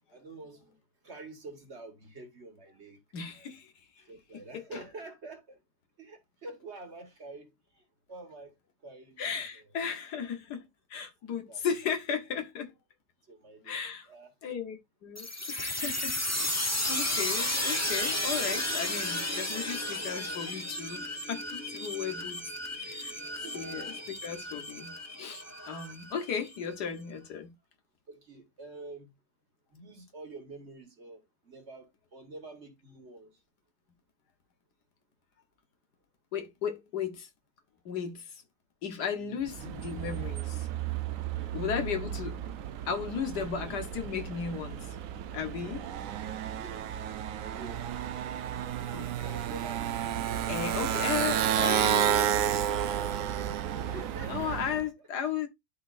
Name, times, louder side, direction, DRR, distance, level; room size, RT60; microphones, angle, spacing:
voice 1, 0.1-0.8 1.0-3.0 3.3-3.5 4.0-5.6 6.0-7.8 8.1-8.5 8.8-9.2 11.5-11.6 13.3-13.8 14.1-14.3 23.4-23.7 28.1-29.1 29.7-33.3 39.2-39.8 41.3-41.6 43.4-43.7 46.6-46.9 47.5-47.9 49.2-50.6 53.6-54.8, right 2 dB, 45° right, 1.7 m, -47 dB
voice 2, 3.1-3.7 4.5-4.8 9.2-10.6 10.9-12.7 13.6-14.1 14.4-22.4 22.8-23.1 23.5-27.5 36.3-37.3 37.9-38.3 38.8-40.7 41.5-42.4 42.9-45.0 45.3-45.8 48.9-49.3 50.5-52.3 54.3-55.5, left 7 dB, 80° left, 1.8 m, -35 dB
sound 1, 15.2-26.6, left 1 dB, 15° left, 0.8 m, -33 dB
Motorcycle, 39.5-54.8, right 10 dB, 65° right, 0.9 m, -32 dB
12.0 x 4.1 x 2.6 m
omnidirectional pair, 1.7 m